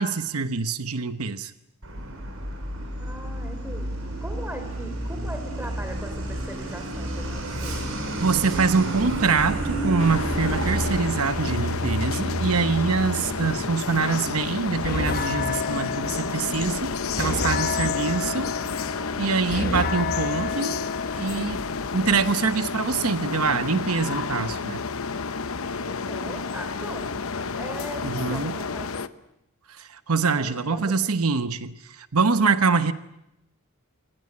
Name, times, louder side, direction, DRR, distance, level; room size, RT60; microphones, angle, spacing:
voice 1, 0.0-1.5 8.2-18.5 19.2-20.9 21.2-21.6 21.9-24.8 28.0-28.5 29.7-32.9, right 4 dB, 90° right, 11 dB, 1.0 m, -24 dB
Truck, 1.8-18.0, right 1 dB, 70° right, 7.1 m, -31 dB
voice 2, 3.0-7.9 25.7-27.2 27.6-29.1 30.3-30.9, right 1 dB, 10° right, 7 dB, 4.3 m, -39 dB
sound 1, 10.0-29.1, left 5 dB, 70° left, 0.9 m, -31 dB
sound 2, 14.6-22.3, left 4 dB, 45° left, 1.7 m, -31 dB
26.5 x 20.5 x 8.6 m, 0.84 s
head